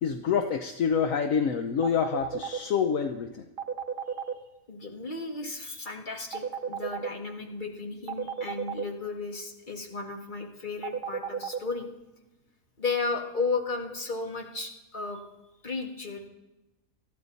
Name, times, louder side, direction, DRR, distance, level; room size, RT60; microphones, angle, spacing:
voice 1, 0.0-3.5, left 7 dB, 70° left, 7 dB, 1.1 m, -27 dB
sound 1, 1.8-2.6 3.6-4.3 6.3-7.1 8.1-8.8 10.8-11.6, right 7 dB, 45° right, 0.8 m, -32 dB
voice 2, 4.7-11.9 12.8-15.2 15.6-16.3, left 4 dB, 35° left, 1 dB, 2.0 m, -34 dB
20.5 x 14.5 x 4.0 m, 1.0 s
omnidirectional pair, 1.5 m